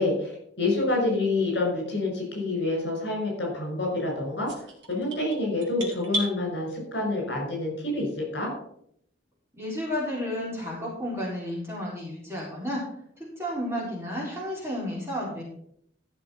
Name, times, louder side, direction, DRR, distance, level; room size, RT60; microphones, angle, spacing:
voice 1, 0.0-4.5 4.9-8.5, left 2 dB, 55° left, 0 dB, 5.9 m, -27 dB
sound 1, 4.5-6.3, right 1 dB, 60° right, 3.3 m, -33 dB
voice 2, 9.5-12.8 13.2-15.4, left 1 dB, 15° right, -5 dB, 4.0 m, -32 dB
13.5 x 6.7 x 5.7 m, 0.69 s
head